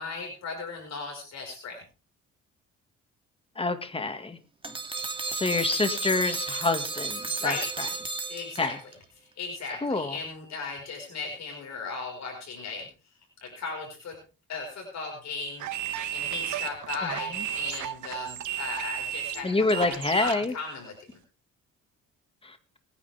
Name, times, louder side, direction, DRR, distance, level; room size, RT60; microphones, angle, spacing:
voice 1, 0.0-1.8 7.4-7.7 8.3-8.7 9.4-12.9 13.4-14.2 14.5-15.6 16.1-21.1, left 4 dB, 60° left, 1 dB, 5.4 m, -36 dB
voice 2, 3.6-4.4 5.3-7.5 8.6-8.7 9.8-10.2 17.0-17.1 19.4-20.5 22.4-22.6, left 3 dB, 20° left, 8 dB, 2.0 m, -27 dB
sound 1, 4.6-8.9, right 3 dB, 15° right, 2.7 m, -33 dB
sound 2, 15.6-20.4, right 11 dB, 75° right, 1.7 m, -33 dB
24.5 x 10.0 x 3.6 m, 0.35 s
cardioid pair, 90°, 30 cm